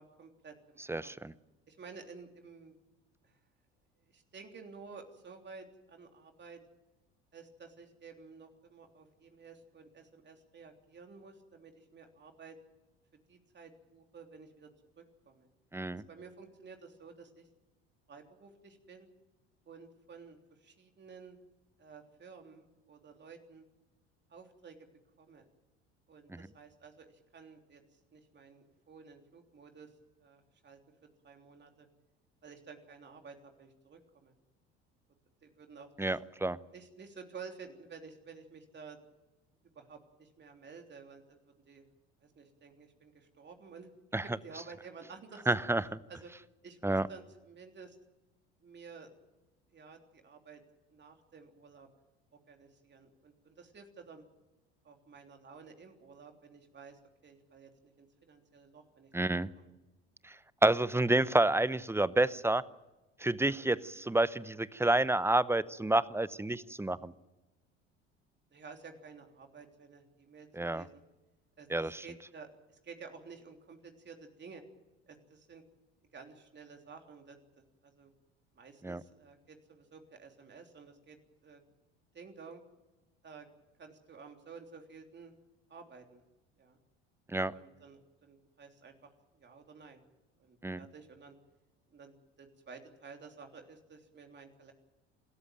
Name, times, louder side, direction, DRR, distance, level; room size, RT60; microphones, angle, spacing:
voice 1, 0.0-1.1 1.7-2.7 3.2-3.4 4.0-6.6 7.3-12.6 13.3-14.7 15.0-15.5 15.9-17.5 18.1-19.1 19.7-21.4 21.8-23.6 24.3-24.8 25.2-25.4 26.1-29.9 30.2-30.8 31.2-31.9 32.4-34.3 35.4-36.2 36.7-39.0 39.7-41.8 42.2-45.5 46.1-46.3 46.6-48.0 48.6-49.1 49.7-50.6 50.9-51.9 52.3-54.2 54.8-59.7 68.5-71.0 71.6-74.6 75.1-75.6 76.1-78.1 78.5-81.2 81.4-81.6 82.1-82.6 83.2-83.5 83.8-85.3 85.7-86.2 86.6-86.8 87.5-90.0 90.4-91.3 91.9-94.7, right 5 dB, 35° right, 4 dB, 3.4 m, -52 dB
voice 2, 0.9-1.3 15.7-16.0 36.0-36.6 44.1-44.2 45.5-46.0 46.8-47.1 59.1-59.5 60.2-60.3 60.6-62.6 63.2-67.1 70.6-70.8 71.7-72.0 78.8-79.0 87.3-87.5 90.6-90.8, right 2 dB, 10° right, 18 dB, 0.8 m, -29 dB
27.0 x 13.5 x 9.2 m, 1.1 s
hypercardioid pair, 65°, 32 cm